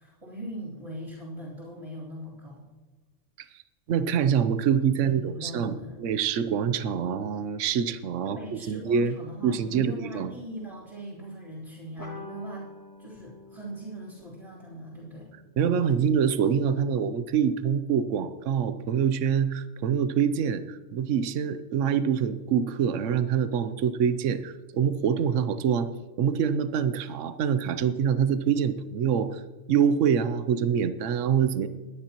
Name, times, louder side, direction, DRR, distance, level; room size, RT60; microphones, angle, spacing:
voice 1, 0.0-2.7 4.9-6.1 8.2-12.7 13.0-15.4, right 1 dB, 25° right, -10 dB, 3.3 m, -40 dB
voice 2, 3.9-9.1 9.4-10.3 15.6-25.9 26.2-29.4 29.7-31.7, right 7 dB, 75° right, 12 dB, 1.0 m, -25 dB
sound 1, 12.0-16.9, left 2 dB, 15° left, 1.8 m, -48 dB
20.5 x 10.0 x 3.0 m, 1.2 s
omnidirectional pair, 1.3 m